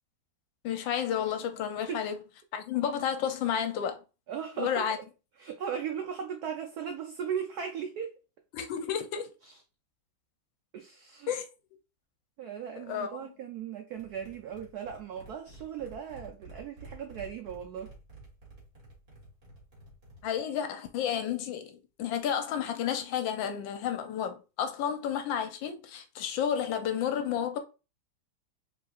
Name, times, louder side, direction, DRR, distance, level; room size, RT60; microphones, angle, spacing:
voice 1, 0.6-2.1 2.5-4.0 4.6-5.0 8.5-9.3 11.3-11.4 12.9-13.3 20.2-27.6, left 8 dB, 75° left, 1.3 m, -31 dB
voice 2, 4.3-4.9 5.4-8.2 9.4-9.6 10.7-11.3 12.4-17.9, right 8 dB, 85° right, 0.8 m, -37 dB
sound 1, 13.9-20.4, right 2 dB, 35° right, 2.2 m, -51 dB
4.9 x 3.3 x 2.4 m
omnidirectional pair, 2.3 m